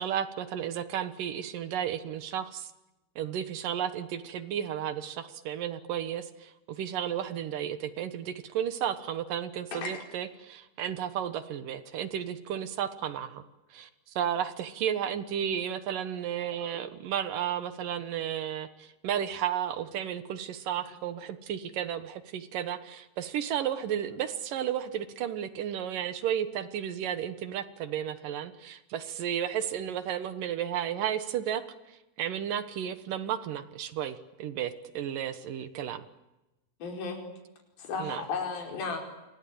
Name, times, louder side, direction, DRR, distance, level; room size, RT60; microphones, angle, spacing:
voice 1, 0.0-2.7 3.2-13.4 13.7-31.6 31.9-36.0 38.0-38.2, right 9 dB, 65° right, 12 dB, 2.7 m, -33 dB
voice 2, 9.7-10.1 36.8-37.2 37.8-39.0, left 4 dB, 60° left, 2 dB, 6.5 m, -34 dB
28.5 x 23.5 x 8.7 m, 0.99 s
omnidirectional pair, 4.6 m